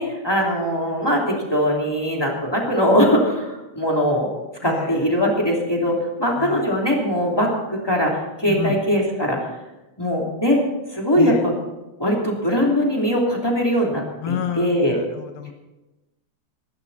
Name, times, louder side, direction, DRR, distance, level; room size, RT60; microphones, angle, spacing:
voice 1, 0.0-4.3 4.6-9.5 10.0-10.6 10.9-11.5 12.0-15.0, equal, 10° left, -2 dB, 1.9 m, -21 dB
voice 2, 4.6-5.1 6.4-6.7 8.5-8.8 11.2-11.4 14.2-15.5, left 7 dB, 70° left, 6 dB, 2.3 m, -30 dB
23.0 x 12.0 x 4.2 m, 1.0 s
omnidirectional pair, 5.3 m